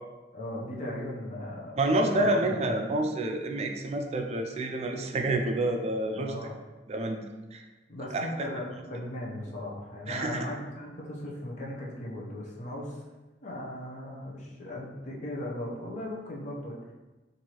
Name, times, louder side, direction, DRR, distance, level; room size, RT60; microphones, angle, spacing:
voice 1, 0.3-2.7 6.1-6.5 7.9-13.0 13.4-16.8, left 1 dB, 40° left, -3 dB, 0.7 m, -38 dB
voice 2, 1.8-6.4 6.9-7.2 7.5-7.6 8.1-8.5 10.1-10.5, right 1 dB, 35° right, 4 dB, 0.4 m, -28 dB
4.5 x 2.6 x 2.9 m, 1.2 s
head